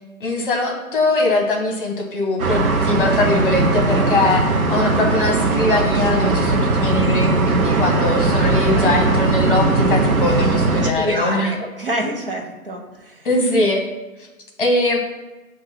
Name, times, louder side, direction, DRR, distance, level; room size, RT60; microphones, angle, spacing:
voice 1, 0.2-11.6 13.2-13.9 14.6-15.0, left 2 dB, 35° left, 1 dB, 1.2 m, -21 dB
sound 1, 2.4-10.9, right 3 dB, 65° right, 0.9 m, -18 dB
voice 2, 8.2-9.0 10.7-13.3, equal, 40° right, 0 dB, 0.8 m, -28 dB
7.6 x 2.7 x 5.7 m, 1.1 s
hypercardioid pair, 170°, 44 cm